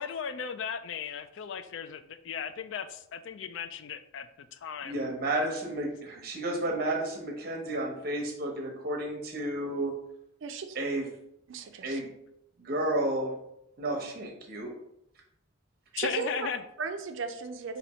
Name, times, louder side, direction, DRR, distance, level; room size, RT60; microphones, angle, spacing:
voice 1, 0.0-4.3 4.6-4.9 16.0-16.6, left 7 dB, 65° left, 11 dB, 0.3 m, -36 dB
voice 2, 4.8-9.9 10.7-11.1 11.8-12.1 12.6-13.3 13.8-14.7, right 1 dB, 50° right, 1 dB, 0.9 m, -31 dB
voice 3, 10.4-10.9 11.5-12.0 15.9-16.3 16.8-17.8, right 5 dB, 70° right, 8 dB, 0.5 m, -36 dB
4.1 x 2.7 x 4.3 m, 0.78 s
head